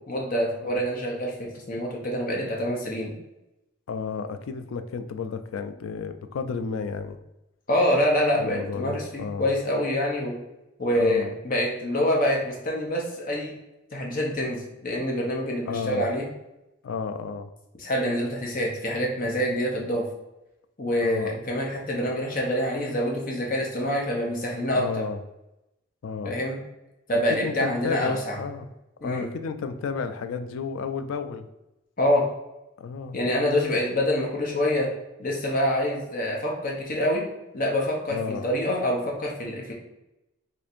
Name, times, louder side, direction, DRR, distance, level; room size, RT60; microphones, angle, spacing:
voice 1, 0.0-3.1 7.7-10.4 10.8-13.5 13.9-16.2 17.8-20.1 20.8-25.0 26.2-26.6 27.1-28.4 29.0-29.3 32.0-32.3 33.1-34.9 35.2-37.2 37.5-39.7, left 1 dB, 40° left, -1 dB, 0.7 m, -26 dB
voice 2, 3.9-7.2 8.4-9.5 10.9-11.3 15.7-16.1 16.8-17.5 21.0-21.4 24.7-25.2 26.0-26.4 27.3-28.7 29.0-31.5 32.8-33.2 38.1-38.5, left 5 dB, 75° left, 8 dB, 0.3 m, -32 dB
2.6 x 2.5 x 4.2 m, 0.93 s
head